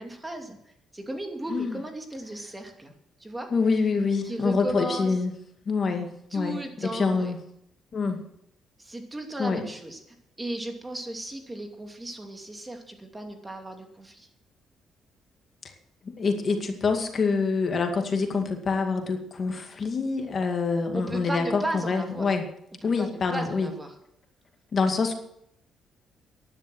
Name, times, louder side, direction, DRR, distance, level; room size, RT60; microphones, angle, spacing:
voice 1, 0.0-2.9 3.2-3.5 4.2-5.2 6.3-7.3 8.8-10.0 10.4-14.3 20.9-22.4 22.8-24.0, right 1 dB, 15° right, 4 dB, 2.7 m, -35 dB
voice 2, 3.5-5.3 5.7-7.4 7.9-8.2 9.4-9.6 15.6-15.7 16.1-22.5 22.8-23.7 24.7-25.1, left 4 dB, 45° left, 4 dB, 2.3 m, -26 dB
12.5 x 11.0 x 6.4 m, 0.74 s
cardioid pair, 90°, 0 cm